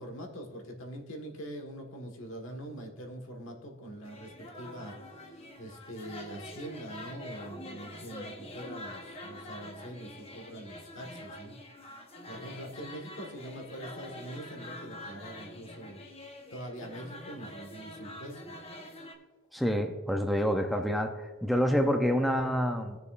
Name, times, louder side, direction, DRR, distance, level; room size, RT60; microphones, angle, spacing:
voice 1, 0.0-11.5 12.2-16.0 16.5-18.5, right 1 dB, 70° left, 3 dB, 1.6 m, -43 dB
sound 1, 4.0-19.1, left 1 dB, 30° left, 0.9 m, -46 dB
voice 2, 19.5-23.0, equal, ahead, 4 dB, 0.5 m, -27 dB
16.5 x 6.8 x 2.5 m, 1.4 s
head